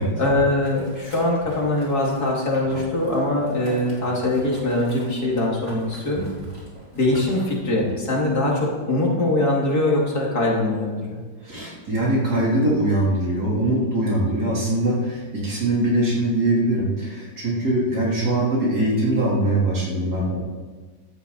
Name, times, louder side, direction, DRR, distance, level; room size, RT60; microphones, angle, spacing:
voice 1, 0.2-6.2 6.9-11.2, left 1 dB, 60° left, -2 dB, 3.0 m, -22 dB
Boiling, 0.6-7.9, right 2 dB, 40° right, 3.4 m, -41 dB
voice 2, 11.4-20.4, right 1 dB, 60° right, -6 dB, 4.2 m, -22 dB
15.0 x 12.0 x 4.2 m, 1.4 s
omnidirectional pair, 1.9 m